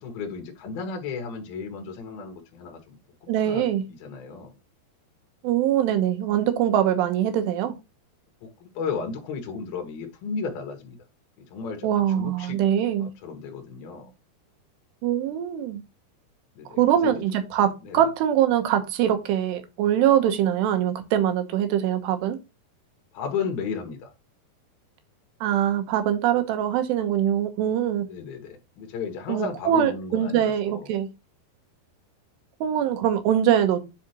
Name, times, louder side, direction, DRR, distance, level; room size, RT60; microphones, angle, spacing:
voice 1, 0.0-4.5 8.4-11.0 11.4-12.6 13.0-14.1 16.5-17.1 17.8-18.0 23.1-24.1 28.1-30.9, left 5 dB, 65° left, 3.5 m, -34 dB
voice 2, 3.3-3.8 5.4-7.7 11.8-13.1 15.0-15.8 16.8-22.4 25.4-28.1 29.3-31.1 32.6-33.8, right 10 dB, 80° right, 3.2 m, -23 dB
10.5 x 4.2 x 2.9 m
omnidirectional pair, 4.9 m